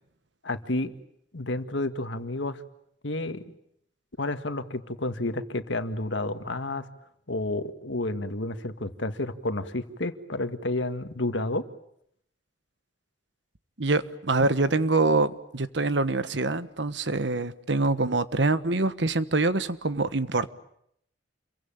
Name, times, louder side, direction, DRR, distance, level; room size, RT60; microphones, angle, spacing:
voice 1, 0.4-0.9 1.3-2.6 3.0-3.4 4.2-6.9 7.3-11.6, left 2 dB, 80° left, 1.9 m, -30 dB
voice 2, 13.8-20.5, right 3 dB, 75° right, 1.4 m, -25 dB
28.0 x 23.5 x 8.9 m
head